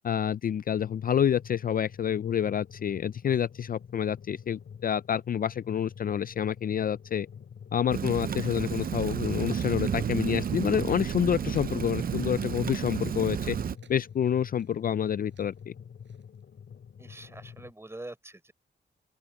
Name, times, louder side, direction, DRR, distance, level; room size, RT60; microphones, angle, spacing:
voice 1, 0.0-7.3 7.7-13.6 13.9-15.7, left 9 dB, 50° left, 0.4 m, -28 dB
sound 1, 0.8-17.7, left 7 dB, 75° left, 3.8 m, -47 dB
Rain, 7.9-13.8, right 8 dB, 50° right, 0.5 m, -31 dB
sound 2, 8.7-9.0 9.4-10.1 10.4-10.8 11.5-11.8 12.5-13.0 13.7-15.6 16.0-16.4, right 8 dB, 85° right, 6.0 m, -61 dB
voice 2, 17.0-18.5, right 2 dB, 15° right, 4.7 m, -44 dB
open air
wide cardioid pair, 110°, 19 cm